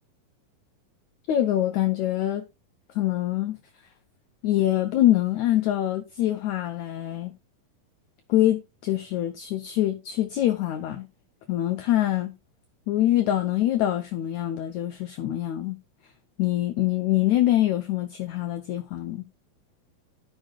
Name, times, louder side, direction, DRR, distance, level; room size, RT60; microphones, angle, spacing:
voice 1, 1.3-2.4 2.9-3.6 4.4-7.3 8.3-11.1 11.5-12.3 12.9-15.8 16.4-19.2, left 13 dB, 85° left, 1.6 m, -24 dB
15.0 x 5.5 x 2.3 m
omnidirectional pair, 4.3 m